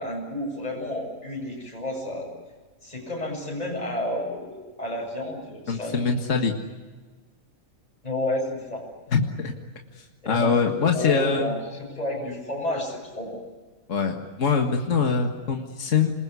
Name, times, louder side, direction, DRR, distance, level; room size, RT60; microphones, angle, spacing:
voice 1, 0.0-2.3 2.8-6.0 8.0-8.8 10.2-13.4, left 1 dB, 25° left, -2 dB, 7.6 m, -31 dB
voice 2, 5.7-6.6 9.1-9.5 10.3-11.5 13.9-16.1, left 5 dB, 60° left, 3 dB, 2.1 m, -23 dB
28.0 x 21.0 x 9.7 m, 1.3 s
omnidirectional pair, 1.5 m